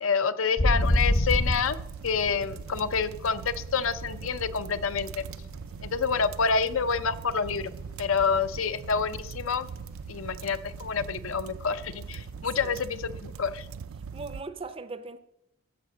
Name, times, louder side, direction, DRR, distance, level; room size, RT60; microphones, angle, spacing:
voice 1, 0.0-1.8 2.0-5.2 5.8-7.7 8.0-9.7 10.1-13.7, left 5 dB, 80° left, 0.6 m, -28 dB
sound 1, 0.6-3.9 4.2-6.5 6.8-7.1 7.4-9.4 9.7-9.8 10.1-10.5 10.8-10.9 13.1-13.2, left 1 dB, 45° left, 0.7 m, -27 dB
sound 2, 0.8-14.4, right 5 dB, 85° right, 0.4 m, -41 dB
voice 2, 14.1-15.2, right 3 dB, 25° right, 0.5 m, -39 dB
13.5 x 5.0 x 6.5 m
head